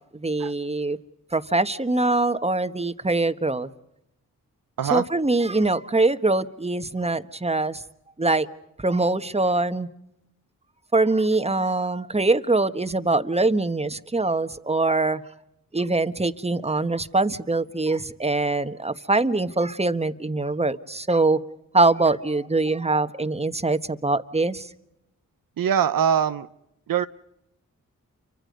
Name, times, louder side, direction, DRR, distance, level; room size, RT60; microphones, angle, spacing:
voice 1, 0.1-1.0 1.3-3.7 4.9-7.8 8.2-8.5 8.8-9.9 10.9-15.2 15.7-21.4 21.7-24.7, right 2 dB, 20° right, 10 dB, 1.4 m, -23 dB
voice 2, 25.6-26.5 26.9-27.0, right 8 dB, 75° right, 11 dB, 0.8 m, -22 dB
29.5 x 25.0 x 5.3 m, 0.83 s
cardioid pair, 40°, 34 cm